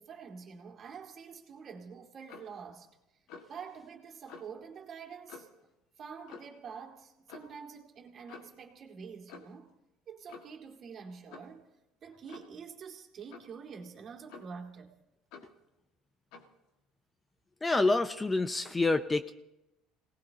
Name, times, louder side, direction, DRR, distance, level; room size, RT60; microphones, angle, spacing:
voice 1, 0.0-2.9 3.5-5.5 6.0-9.7 10.1-11.6 12.0-15.0, right 6 dB, 40° right, 1 dB, 2.4 m, -47 dB
Clock, 2.3-2.6 3.3-3.6 4.3-4.5 5.3-5.6 6.3-6.6 7.3-7.5 8.3-8.6 9.3-9.6 10.3-10.6 11.3-11.6 12.3-12.6 13.3-13.6 14.3-14.7 15.3-15.6 16.3-16.5, left 5 dB, 75° left, 1.8 m, -50 dB
voice 2, 17.6-19.3, left 3 dB, 15° left, 10 dB, 0.5 m, -27 dB
27.0 x 18.5 x 2.9 m, 0.92 s
cardioid pair, 125°, 0 cm